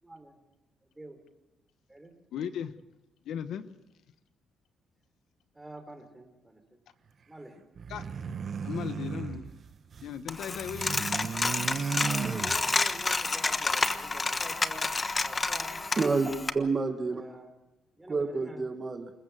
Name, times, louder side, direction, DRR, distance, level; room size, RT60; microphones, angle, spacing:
voice 1, 0.0-0.4 0.8-1.2 1.9-2.1 5.5-6.8 7.3-7.6 11.2-11.6 11.9-14.9 15.1-15.8 17.1-17.5 17.9-18.6, right 1 dB, 10° right, 5 dB, 4.6 m, -46 dB
voice 2, 2.3-2.8 3.2-3.7 7.9-9.5 10.0-11.1, left 8 dB, 75° left, 11 dB, 1.1 m, -37 dB
sound 1, 7.8-10.2 10.5-13.0, right 6 dB, 50° right, 1.0 m, -35 dB
Coin (dropping), 10.3-16.5, left 3 dB, 30° left, 1.3 m, -30 dB
voice 3, 16.0-17.2 18.1-19.1, right 4 dB, 35° right, 6 dB, 1.9 m, -29 dB
27.5 x 14.5 x 7.6 m, 1.0 s
cardioid pair, 90°, 0 cm